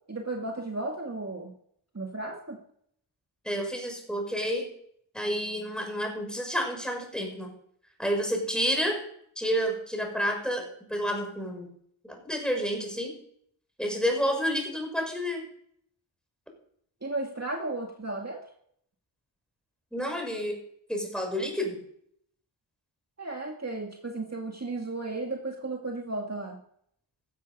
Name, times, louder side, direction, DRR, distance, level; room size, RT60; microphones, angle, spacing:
voice 1, 0.1-1.5 1.9-2.6 17.0-18.5 23.2-26.6, right 2 dB, 30° right, 1 dB, 2.1 m, -34 dB
voice 2, 3.4-4.7 5.1-7.5 8.0-9.0 9.4-10.6 10.9-11.7 12.0-13.2 13.8-15.4 19.9-20.6 20.9-21.8, equal, ahead, 2 dB, 5.6 m, -29 dB
15.5 x 13.0 x 5.4 m, 0.68 s
wide cardioid pair, 75°, 48 cm